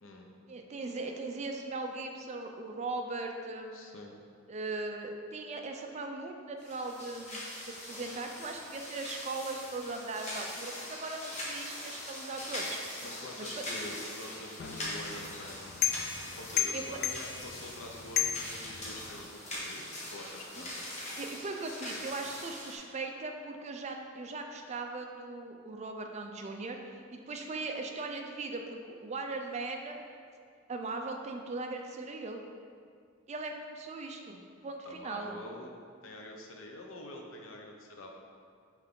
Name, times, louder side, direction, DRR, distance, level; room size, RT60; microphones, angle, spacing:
voice 1, 0.5-3.7 4.5-12.8 13.4-13.6 16.7-17.0 20.6-20.7 21.2-30.0 30.7-32.4 33.3-35.4, right 3 dB, 30° right, 3 dB, 0.4 m, -39 dB
voice 2, 3.7-4.2 13.0-15.7 16.4-20.8 34.8-35.7 36.0-38.1, left 1 dB, 70° left, 1 dB, 0.7 m, -46 dB
sound 1, 6.6-22.8, left 1 dB, 30° left, 1.2 m, -42 dB
sound 2, 14.6-19.3, left 9 dB, 50° left, 0.3 m, -35 dB
5.7 x 4.6 x 3.7 m, 2.2 s
head